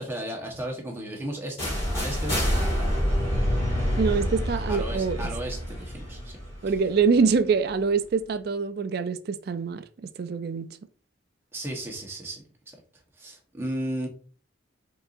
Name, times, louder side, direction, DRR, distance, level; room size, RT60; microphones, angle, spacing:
voice 1, 0.0-2.9 4.7-6.4 11.5-12.8 13.2-14.1, right 1 dB, 10° right, 1.0 m, -35 dB
sound 1, 1.6-7.4, equal, 30° left, 2.0 m, -27 dB
voice 2, 4.0-5.2 6.6-9.8 10.2-10.7, right 5 dB, 50° right, 0.3 m, -24 dB
4.5 x 3.9 x 2.5 m
head